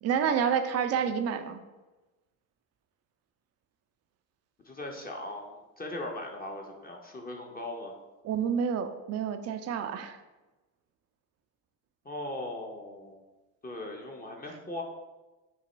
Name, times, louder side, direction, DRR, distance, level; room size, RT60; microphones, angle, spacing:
voice 1, 0.0-1.6 8.2-10.2, right 7 dB, 35° right, 8 dB, 0.4 m, -29 dB
voice 2, 4.6-7.9 12.0-13.2 13.6-14.8, left 1 dB, 20° left, 1 dB, 0.6 m, -39 dB
5.9 x 2.1 x 3.1 m, 1.1 s
hypercardioid pair, 55°, 48 cm